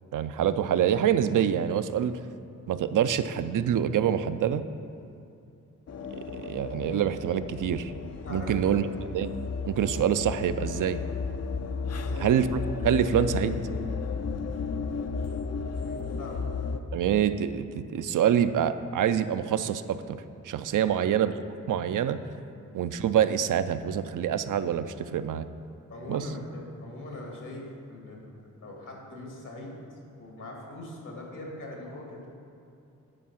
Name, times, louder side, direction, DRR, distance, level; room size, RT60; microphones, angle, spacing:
voice 1, 0.1-2.1 2.7-4.6 6.1-7.9 8.3-8.9 9.1-9.3 9.7-11.0 12.2-12.5 12.8-13.6 16.9-21.3 21.7-22.2 22.7-25.5 26.1-26.3, right 9 dB, 75° right, 11 dB, 0.5 m, -26 dB
sound 1, 5.9-16.8, left 5 dB, 55° left, 0.6 m, -34 dB
voice 2, 8.2-8.7 11.9-12.3 15.8-16.4 20.8-21.0 22.5-22.6 25.9-29.7 30.2-32.3, left 2 dB, 70° left, -1 dB, 2.2 m, -41 dB
10.0 x 4.6 x 5.8 m, 2.6 s
cardioid pair, 55°, 32 cm